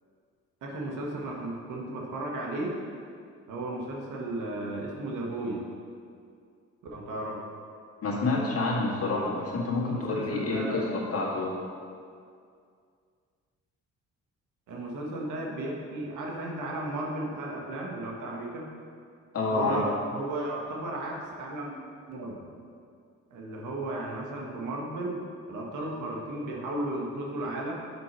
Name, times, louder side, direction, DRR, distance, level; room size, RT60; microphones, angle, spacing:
voice 1, 0.6-2.8 3.5-5.7 6.9-7.4 9.8-10.9 14.7-18.7 19.5-21.8 22.1-22.4 23.3-27.7, right 1 dB, 85° right, -2 dB, 1.5 m, -34 dB
voice 2, 8.0-11.5 19.3-19.8, left 3 dB, 50° left, -3 dB, 1.8 m, -28 dB
6.0 x 4.7 x 6.0 m, 2.3 s
cardioid pair, 90°, 30 cm